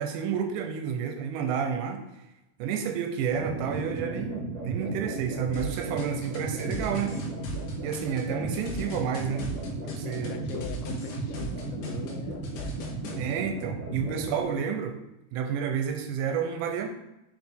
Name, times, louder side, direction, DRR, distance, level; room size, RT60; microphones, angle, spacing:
voice 1, 0.0-2.0 2.6-7.2 7.8-9.5 9.8-10.4 13.2-14.9 15.3-16.9, right 7 dB, 80° right, 5 dB, 2.8 m, -30 dB
sound 1, 3.3-14.4, right 2 dB, 65° right, 1.5 m, -35 dB
Bass guitar, 3.5-11.5, right 7 dB, 15° right, 1.4 m, -48 dB
sound 2, 5.5-13.2, left 1 dB, 70° left, 3.2 m, -38 dB
voice 2, 8.2-8.5 10.0-12.8 14.2-14.7, left 7 dB, 90° left, 6 dB, 3.0 m, -42 dB
8.1 x 4.9 x 3.6 m, 0.93 s
omnidirectional pair, 5.4 m